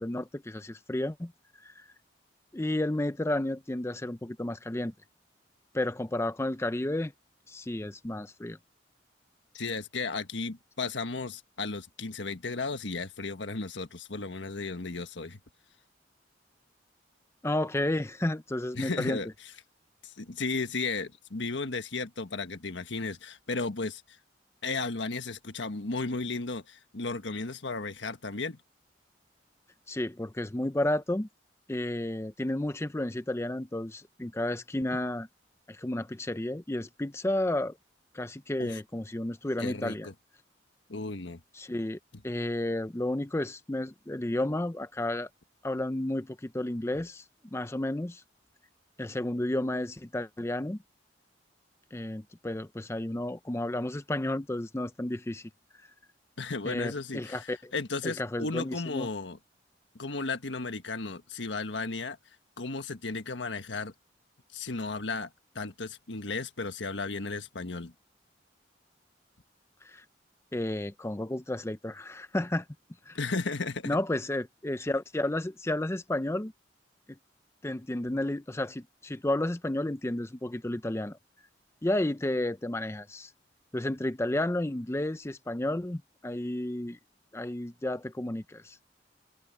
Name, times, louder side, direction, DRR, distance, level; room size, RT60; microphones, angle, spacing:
voice 1, 0.0-1.3 1.6-1.9 2.5-4.9 5.7-7.1 7.5-8.6 17.4-19.2 29.9-31.3 31.7-35.3 35.7-37.8 38.1-40.1 41.5-42.0 42.2-45.3 45.6-47.2 47.5-48.2 49.0-50.8 51.9-55.5 56.6-57.7 58.0-59.1 69.8-70.0 70.5-72.7 73.1-73.2 73.8-76.5 77.6-81.2 81.8-83.3 83.7-87.0 87.3-88.8, left 1 dB, 15° left, 0.6 m, -32 dB
voice 2, 9.5-15.4 18.7-19.3 20.0-24.0 24.6-28.6 38.6-38.8 39.6-40.1 40.9-41.4 56.4-59.4 59.9-62.2 62.6-63.9 64.5-65.3 65.5-67.9 73.1-74.0, left 3 dB, 85° left, 1.4 m, -34 dB
head